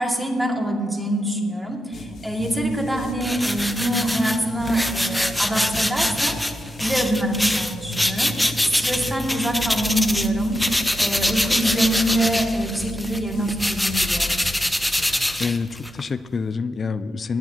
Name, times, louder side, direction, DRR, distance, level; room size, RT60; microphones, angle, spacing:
voice 1, 0.0-6.4 6.8-8.3 8.6-10.6 11.0-14.4, right 1 dB, 10° right, 0 dB, 2.2 m, -24 dB
sound 1, 1.9-15.1, left 2 dB, 65° left, 1.2 m, -36 dB
sound 2, 3.2-10.3 10.5-16.0, left 1 dB, 5° left, 0.7 m, -24 dB
voice 2, 15.1-17.4, left 5 dB, 40° left, 13 dB, 0.4 m, -27 dB
20.5 x 8.9 x 2.8 m, 2.4 s
cardioid pair, 90°, 0 cm